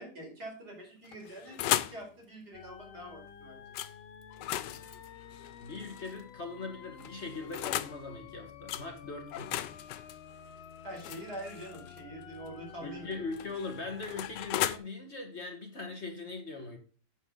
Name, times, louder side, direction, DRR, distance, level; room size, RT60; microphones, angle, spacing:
voice 1, 0.0-1.6 1.9-3.8 10.8-13.2, right 1 dB, 65° right, -1 dB, 5.1 m, -45 dB
sound 1, 1.0-2.0 3.7-3.9 4.3-6.2 7.0-8.0 8.7-8.9 9.3-12.0 13.1-14.8, left 13 dB, 85° left, 1.3 m, -36 dB
sound 2, 2.5-14.8, left 8 dB, 60° left, 0.6 m, -51 dB
voice 2, 5.6-9.5 12.8-16.8, left 3 dB, 40° left, 4 dB, 1.7 m, -40 dB
9.1 x 7.4 x 3.7 m, 0.39 s
omnidirectional pair, 1.9 m